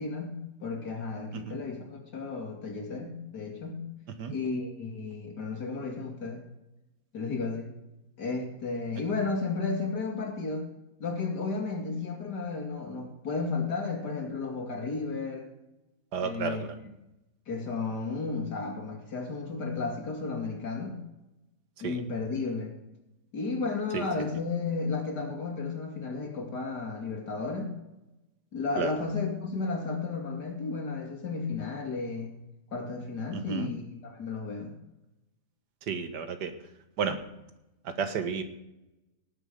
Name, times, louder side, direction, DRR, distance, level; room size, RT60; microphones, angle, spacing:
voice 1, 0.0-3.9 4.3-6.4 7.1-7.7 8.2-10.7 11.0-15.5 16.2-16.6 17.5-21.0 21.8-22.7 23.3-27.7 28.5-32.3 32.7-34.7, left 4 dB, 85° left, 1 dB, 3.0 m, -33 dB
voice 2, 16.1-16.8 21.8-22.0 23.9-24.1 28.8-28.9 33.3-33.7 35.9-36.5 37.0-37.2 37.8-38.4, right 6 dB, 85° right, 9 dB, 1.8 m, -32 dB
18.0 x 7.6 x 5.2 m, 0.93 s
omnidirectional pair, 1.7 m